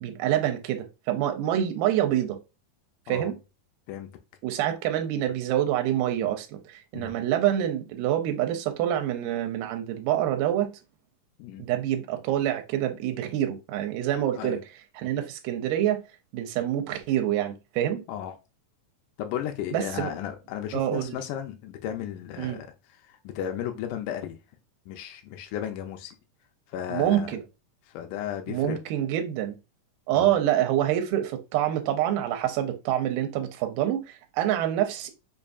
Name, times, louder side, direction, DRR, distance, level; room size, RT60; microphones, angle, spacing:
voice 1, 0.0-2.4 3.1-3.3 4.4-10.7 11.6-14.6 15.0-16.0 16.3-18.0 19.7-20.1 20.7-21.2 22.4-22.6 26.9-27.4 28.5-29.5 30.1-35.1, right 11 dB, 85° right, 2.2 m, -26 dB
voice 2, 3.9-4.2 6.9-7.2 11.4-11.7 14.4-14.6 18.1-18.3 19.2-22.7 23.2-24.4 24.9-26.1 26.7-27.3 27.9-28.8 30.1-30.3, left 10 dB, 80° left, 2.0 m, -34 dB
5.4 x 2.6 x 2.4 m
omnidirectional pair, 3.9 m